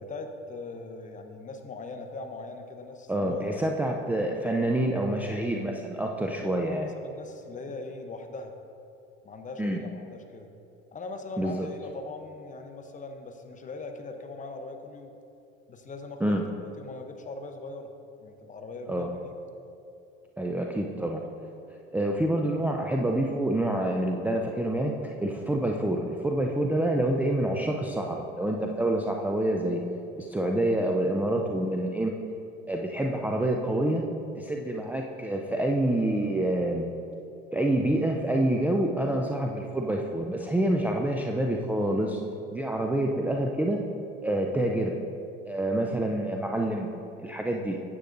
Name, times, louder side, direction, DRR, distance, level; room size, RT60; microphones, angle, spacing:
voice 1, 0.0-3.5 6.2-8.5 9.2-10.5 10.9-15.1 15.7-16.4 16.8-17.9 18.2-19.3, left 3 dB, 25° left, 5 dB, 0.8 m, -40 dB
voice 2, 3.1-6.9 9.6-9.8 11.4-11.7 16.2-16.4 18.9-19.1 20.4-21.2 21.9-29.8 30.2-32.1 32.7-34.0 34.4-36.8 37.5-42.2 42.5-43.8 44.2-44.9 45.5-46.9 47.2-47.8, right 1 dB, 5° right, 0 dB, 0.4 m, -27 dB
9.7 x 8.2 x 2.6 m, 2.7 s
hypercardioid pair, 85°, 29 cm